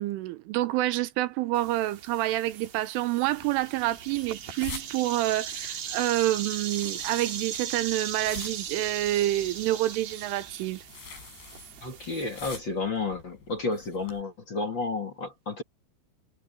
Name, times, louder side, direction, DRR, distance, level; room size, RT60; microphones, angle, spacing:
voice 1, 0.0-10.8, right 16 dB, 85° right, 3.6 m, -28 dB
sound 1, 1.5-12.5, right 8 dB, 55° right, 4.3 m, -38 dB
sound 2, 3.3-14.2, left 5 dB, 60° left, 8.4 m, -47 dB
voice 2, 11.8-15.6, left 3 dB, 40° left, 1.8 m, -31 dB
omnidirectional pair, 5.5 m